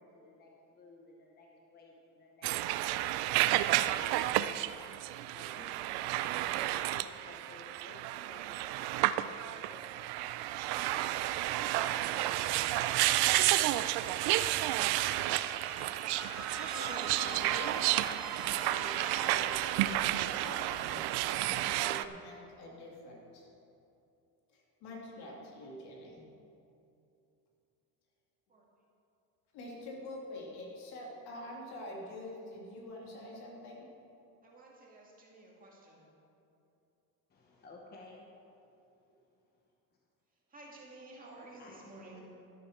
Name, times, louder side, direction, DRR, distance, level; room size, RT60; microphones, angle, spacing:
voice 1, 0.0-2.5 3.3-4.7 5.3-10.9 11.6-13.9 37.3-38.2 41.6-42.2, left 2 dB, 25° left, 0 dB, 1.0 m, -55 dB
sound 1, 2.4-22.0, right 15 dB, 80° right, 0.5 m, -31 dB
Squeak, 15.0-21.1, equal, ahead, 1.5 m, -46 dB
voice 2, 16.7-23.5 24.5-26.2 29.5-33.9, left 1 dB, 85° left, -2 dB, 2.9 m, -46 dB
voice 3, 34.4-36.1 40.5-42.2, right 2 dB, 20° right, -3 dB, 2.0 m, -53 dB
12.5 x 11.5 x 4.4 m, 2.7 s
cardioid pair, 170°, 38 cm